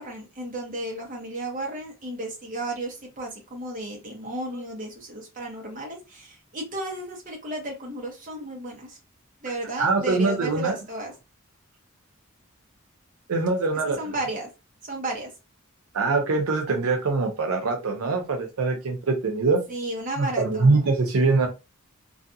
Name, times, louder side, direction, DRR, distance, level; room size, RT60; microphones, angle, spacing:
voice 1, 0.0-9.0 9.4-11.1 14.0-14.5 14.8-15.3 19.7-20.8, right 1 dB, 40° right, 0 dB, 0.9 m, -33 dB
voice 2, 9.8-10.8 13.3-14.0 15.9-19.6 20.2-21.5, right 3 dB, 85° right, 3 dB, 0.5 m, -23 dB
2.5 x 2.3 x 2.5 m, 0.27 s
head